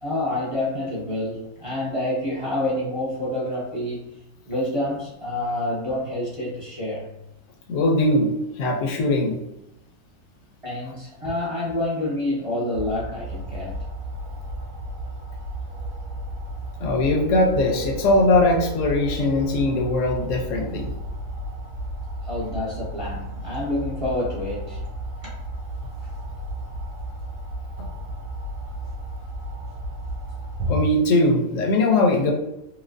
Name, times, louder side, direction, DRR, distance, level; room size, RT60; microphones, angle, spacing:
voice 1, 0.0-4.2 4.4-7.1 10.6-13.8 22.2-24.8 25.2-25.3 26.0-26.1, left 1 dB, 30° right, -8 dB, 0.7 m, -28 dB
voice 2, 7.7-9.4 16.8-20.9 30.7-32.3, left 2 dB, 65° left, 1 dB, 0.9 m, -20 dB
sound 1, 12.7-30.8, right 1 dB, 90° right, 1.2 m, -33 dB
3.0 x 2.8 x 2.5 m, 0.86 s
omnidirectional pair, 1.6 m